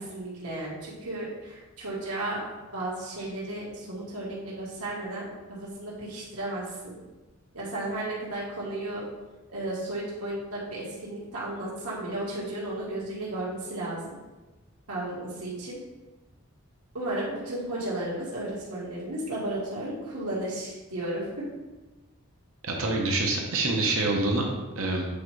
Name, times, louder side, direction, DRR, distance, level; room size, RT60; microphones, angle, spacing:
voice 1, 0.0-2.4 2.7-7.0 7.5-9.0 9.5-14.2 14.9-15.8 16.9-21.2, right 1 dB, 80° right, -6 dB, 1.9 m, -34 dB
voice 2, 22.6-24.5 24.8-25.0, right 2 dB, 65° right, 0 dB, 0.9 m, -26 dB
8.4 x 4.5 x 3.2 m, 1.1 s
head